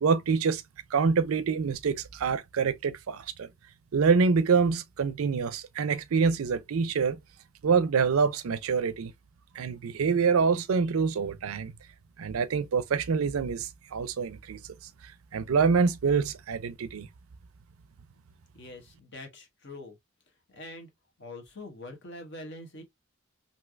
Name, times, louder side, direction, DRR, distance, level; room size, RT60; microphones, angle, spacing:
voice 1, 0.0-0.6 0.9-3.5 3.9-7.2 7.6-9.1 9.5-11.7 12.2-14.6 15.3-17.1, right 5 dB, 90° right, 0.4 m, -26 dB
voice 2, 18.5-20.0 20.5-20.9 21.2-22.8, left 2 dB, 55° left, 1.1 m, -44 dB
3.3 x 2.7 x 2.3 m
head